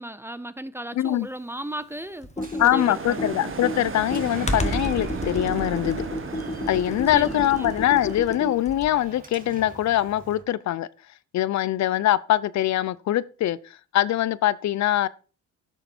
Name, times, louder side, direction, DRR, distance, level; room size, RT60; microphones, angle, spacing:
voice 1, 0.0-3.3 7.1-7.7, right 1 dB, 10° right, 0.6 m, -36 dB
voice 2, 0.9-1.3 2.6-6.0 6.7-10.9 11.3-13.6 13.9-15.1, left 13 dB, 65° left, 0.6 m, -23 dB
Door, 1.7-10.4, right 2 dB, 30° right, 2.4 m, -47 dB
Computer keyboard, 2.2-9.1, left 1 dB, 20° left, 1.4 m, -31 dB
sound 1, 2.8-8.2, right 4 dB, 45° right, 1.8 m, -34 dB
11.5 x 7.0 x 4.4 m
cardioid pair, 90°, 30 cm